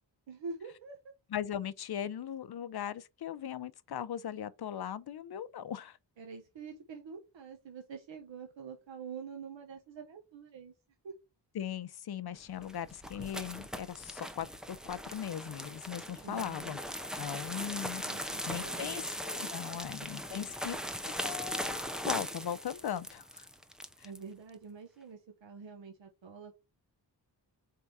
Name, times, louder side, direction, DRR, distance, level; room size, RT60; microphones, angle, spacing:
voice 1, 0.3-1.0 6.2-10.7 11.0-11.1 16.2-16.8 18.0-19.0 19.7-20.4 24.0-26.6, right 5 dB, 85° right, 1.1 m, -46 dB
voice 2, 1.3-6.0 11.5-16.8 17.2-20.8 21.1-23.5 24.0-24.1, left 9 dB, 60° left, 0.6 m, -39 dB
sound 1, 12.5-24.2, equal, ahead, 0.5 m, -39 dB
4.7 x 3.7 x 5.5 m
wide cardioid pair, 175°, 44 cm